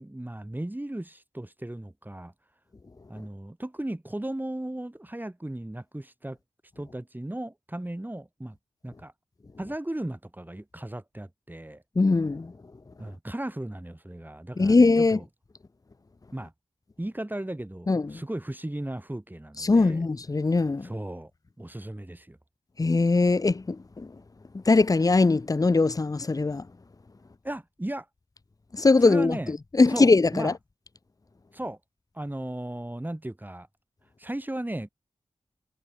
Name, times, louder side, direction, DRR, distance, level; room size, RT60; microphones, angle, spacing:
voice 1, 0.0-2.3 3.1-6.4 6.8-8.6 8.8-9.1 9.6-11.8 13.0-15.2 16.3-16.5 17.0-20.0 20.8-21.3 21.6-22.4 27.4-28.1 29.0-29.5 29.8-30.5 31.5-31.8 32.1-33.7 34.2-34.9, right 1 dB, 15° right, 2.8 m, -36 dB
voice 2, 12.0-12.5 14.6-15.2 17.9-18.2 19.6-20.9 22.8-24.1 24.7-26.6 28.7-30.5, left 3 dB, 30° left, 0.6 m, -21 dB
wide cardioid pair, 70°, 11 cm